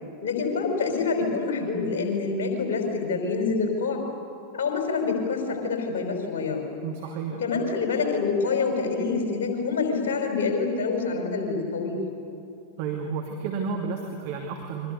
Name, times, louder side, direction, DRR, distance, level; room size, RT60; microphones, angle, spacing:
voice 1, 0.2-4.0 4.5-6.7 7.4-12.0, left 4 dB, 60° left, 3 dB, 5.3 m, -26 dB
voice 2, 6.8-7.4 12.8-14.9, right 5 dB, 50° right, 1 dB, 2.6 m, -31 dB
29.5 x 24.0 x 6.9 m, 2.7 s
figure-of-eight pair, 90°, 0 cm